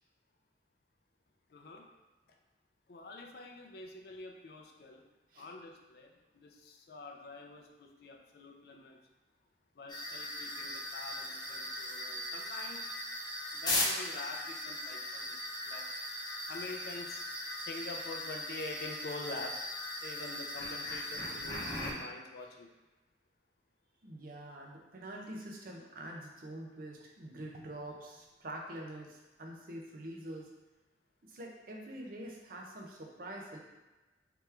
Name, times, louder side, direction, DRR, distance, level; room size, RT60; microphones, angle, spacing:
voice 1, 1.5-1.9 2.9-5.0 5.4-9.0 9.8-12.9 13.5-15.9 16.5-17.2 17.6-19.5 20.0-22.7, left 3 dB, 55° left, 2 dB, 0.4 m, -46 dB
sound 1, 9.9-21.9, left 1 dB, 20° left, 0.7 m, -38 dB
voice 2, 24.0-30.5 31.2-33.6, right 1 dB, 50° right, 0 dB, 0.6 m, -45 dB
3.4 x 3.0 x 3.3 m, 1.2 s
head